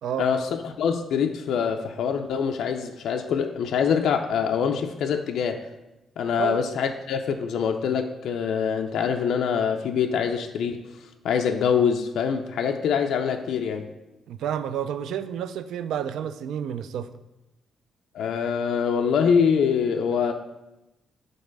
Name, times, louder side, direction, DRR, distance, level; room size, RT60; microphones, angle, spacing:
voice 1, 0.2-5.7 6.2-10.8 11.2-13.9 18.1-20.3, left 7 dB, 70° left, 4 dB, 0.4 m, -24 dB
voice 2, 14.3-17.1, right 9 dB, 85° right, 12 dB, 0.3 m, -30 dB
5.3 x 4.0 x 5.9 m, 0.98 s
cardioid pair, 175°, 0 cm